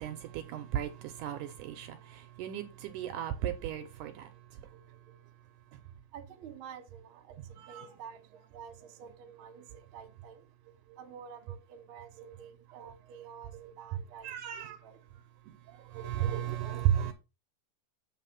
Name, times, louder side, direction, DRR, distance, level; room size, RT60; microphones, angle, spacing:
voice 1, 0.0-4.3 4.7-4.8 7.6-7.9 10.9-11.0 12.2-12.3 12.8-12.9 13.5-13.6 14.2-14.8 15.5-17.1, right 11 dB, 80° right, 2.0 m, -35 dB
voice 2, 6.1-7.3 7.7-8.2 8.5-9.7 9.9-10.4 11.0-14.3 14.6-15.0, right 7 dB, 60° right, 1.4 m, -49 dB
8.3 x 3.6 x 5.8 m
omnidirectional pair, 4.0 m